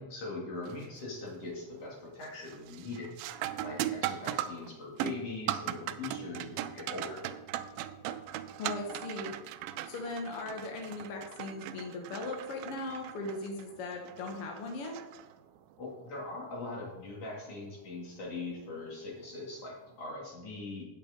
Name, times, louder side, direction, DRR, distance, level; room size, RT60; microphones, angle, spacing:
voice 1, 0.0-3.1 3.6-7.2 15.8-20.9, left 3 dB, 45° left, -3 dB, 3.4 m, -41 dB
sound 1, 0.6-1.0 1.4-1.9 2.2-15.7 18.2-18.3 19.2-19.4, right 12 dB, 90° right, 2.4 m, -39 dB
voice 2, 8.6-9.3 9.9-15.0, left 3 dB, 65° left, 1 dB, 1.5 m, -38 dB
9.1 x 7.9 x 5.2 m, 1.1 s
omnidirectional pair, 4.1 m